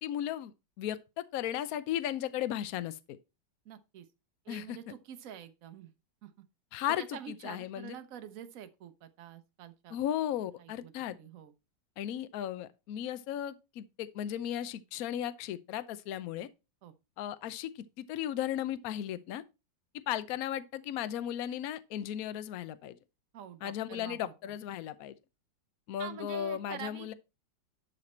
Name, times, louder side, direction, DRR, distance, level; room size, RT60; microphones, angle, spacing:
voice 1, 0.0-3.2 4.5-4.8 6.7-8.0 9.9-11.2 12.0-16.5 17.2-19.4 20.1-22.9 23.6-25.1 25.9-27.1, left 11 dB, 65° left, 1.0 m, -36 dB
voice 2, 3.6-4.1 4.4-5.9 6.2-6.3 7.0-9.9 10.6-11.5 16.8-16.9 23.3-24.6 26.0-27.1, right 9 dB, 55° right, 1.1 m, -46 dB
11.0 x 4.2 x 4.3 m
omnidirectional pair, 2.0 m